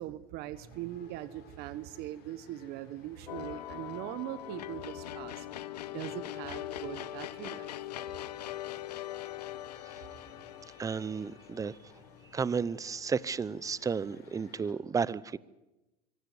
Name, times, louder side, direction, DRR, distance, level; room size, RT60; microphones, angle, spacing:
voice 1, 0.0-5.5 5.9-7.7 10.8-10.9, right 14 dB, 55° right, 16 dB, 1.1 m, -41 dB
sound 1, 0.5-14.7, left 6 dB, 55° left, 6.0 m, -56 dB
sound 2, 3.3-12.5, left 13 dB, 90° left, 0.9 m, -42 dB
voice 2, 10.8-11.8 12.3-15.4, right 5 dB, 15° right, 21 dB, 0.8 m, -32 dB
24.5 x 17.0 x 9.6 m, 1.0 s
hypercardioid pair, 105°, 20 cm